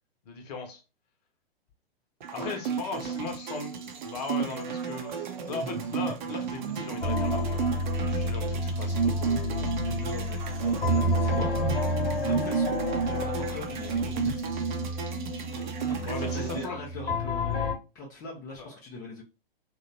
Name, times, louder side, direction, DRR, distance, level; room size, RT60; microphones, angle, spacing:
voice 1, 0.3-0.8 2.3-7.6 8.0-9.7 16.1-16.8 18.6-18.8, left 4 dB, 45° left, 5 dB, 0.7 m, -38 dB
sound 1, 2.2-16.7, right 6 dB, 50° right, 0.6 m, -32 dB
voice 2, 2.3-2.6 3.0-3.2 9.8-11.6 12.2-12.8 13.0-15.1 15.7-17.7 17.9-19.2, left 2 dB, 10° left, -3 dB, 0.4 m, -42 dB
sound 2, 7.0-17.7, left 1 dB, 70° left, 0.9 m, -30 dB
2.9 x 2.1 x 2.6 m, 0.29 s
figure-of-eight pair, 110°, 30 cm